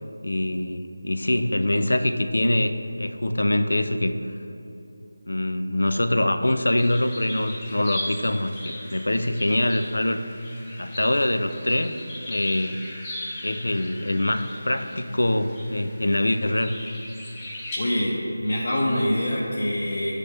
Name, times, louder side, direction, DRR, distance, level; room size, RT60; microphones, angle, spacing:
voice 1, 0.2-4.2 5.3-10.2 10.8-12.0 12.3-12.8 13.4-16.8, left 1 dB, 80° left, 8 dB, 0.4 m, -24 dB
sound 1, 6.8-17.8, left 1 dB, 15° left, 0.7 m, -39 dB
voice 2, 17.8-20.1, equal, 50° left, -6 dB, 0.9 m, -25 dB
6.2 x 3.3 x 5.6 m, 2.8 s
figure-of-eight pair, 165°, 0 cm